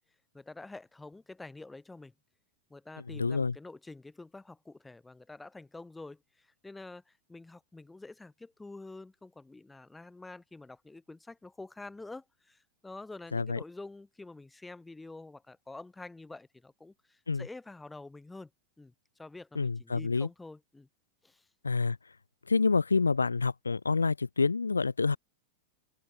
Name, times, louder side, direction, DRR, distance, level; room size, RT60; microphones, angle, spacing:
voice 1, 0.3-2.1 2.7-18.5 18.8-18.9 19.2-20.9 21.2-21.5, left 2 dB, 10° left, 2.8 m, -47 dB
voice 2, 3.1-3.5 13.3-13.6 17.3-17.4 19.6-20.3 21.6-22.0 22.5-25.2, left 4 dB, 75° left, 0.8 m, -27 dB
open air
figure-of-eight pair, 90°, 0 cm